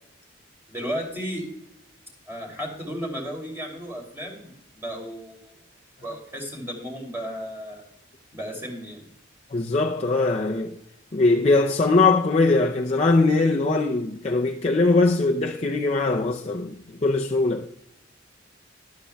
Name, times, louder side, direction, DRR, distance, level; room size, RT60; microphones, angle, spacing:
voice 1, 0.7-1.4 2.3-5.5 6.0-7.8 8.3-9.0, equal, 10° right, 3.0 m, -34 dB
voice 2, 9.5-10.7 11.1-17.7, left 3 dB, 35° left, 0.5 m, -21 dB
12.5 x 11.5 x 2.3 m
head